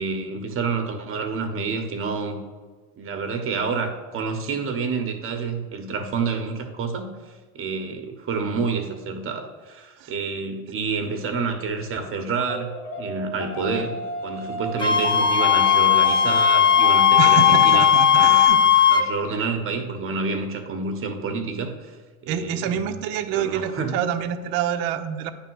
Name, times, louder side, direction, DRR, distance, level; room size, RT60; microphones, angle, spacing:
voice 1, 0.0-2.4 3.0-17.9 18.1-18.6 18.9-22.0 22.2-23.0 23.3-24.0, right 4 dB, 30° right, 5 dB, 1.1 m, -28 dB
sound 1, 12.4-18.5, left 5 dB, 75° left, 1.1 m, -29 dB
Wind instrument woodwind instrument, 14.8-19.1, left 9 dB, 15° left, 0.3 m, -17 dB
voice 2, 17.2-18.8 22.3-25.3, right 9 dB, 55° right, 7 dB, 0.7 m, -27 dB
8.8 x 3.5 x 4.7 m, 1.4 s
supercardioid pair, 100°, 41 cm